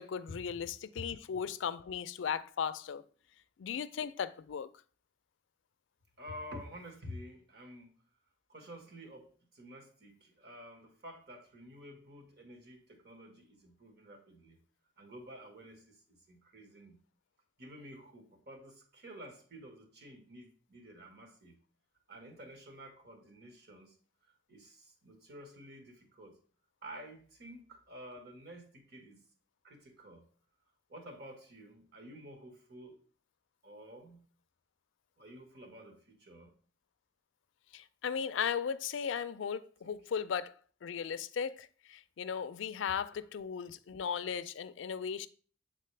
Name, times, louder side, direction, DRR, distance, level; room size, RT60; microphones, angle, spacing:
voice 1, 0.0-3.0 3.6-4.7 37.7-45.3, left 7 dB, 80° left, 0.4 m, -37 dB
voice 2, 6.2-7.9 8.5-14.6 15.0-16.9 17.6-21.6 22.1-24.0 24.2-26.4 26.8-29.2 29.6-30.3 30.9-33.0 33.6-34.2 35.2-36.5 39.8-39.9, equal, 55° right, 1.4 m, -50 dB
7.5 x 4.1 x 3.2 m
head